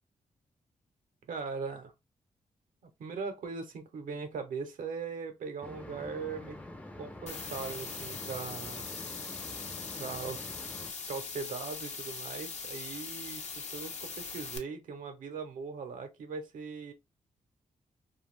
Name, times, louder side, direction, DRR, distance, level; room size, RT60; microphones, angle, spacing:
voice 1, 1.3-1.9 3.0-6.6 7.0-8.9 10.0-10.4 11.1-16.9, right 5 dB, 80° right, 0.7 m, -40 dB
sound 1, 5.6-10.9, left 2 dB, 10° left, 0.4 m, -46 dB
sound 2, 7.3-14.6, left 5 dB, 60° left, 0.6 m, -41 dB
2.5 x 2.3 x 3.2 m
cardioid pair, 75°, 13 cm